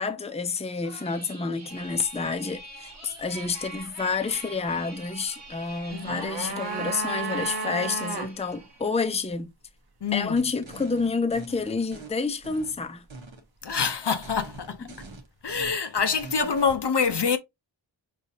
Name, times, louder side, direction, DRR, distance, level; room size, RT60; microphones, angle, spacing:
voice 1, 0.0-9.5 10.1-13.1, left 4 dB, 15° left, 0.5 m, -29 dB
sound 1, 0.8-8.9, right 2 dB, 35° right, 1.2 m, -45 dB
sound 2, 5.7-8.3 8.6-8.7, right 3 dB, 55° right, 0.8 m, -32 dB
voice 2, 5.9-6.6 10.0-10.4 13.6-14.9 15.4-17.4, left 6 dB, 60° left, 0.7 m, -26 dB
sound 3, 10.4-12.1 12.4-13.4 13.7-13.9 14.2-16.8, right 3 dB, 85° right, 0.9 m, -44 dB
5.0 x 2.7 x 2.6 m
wide cardioid pair, 40°, 46 cm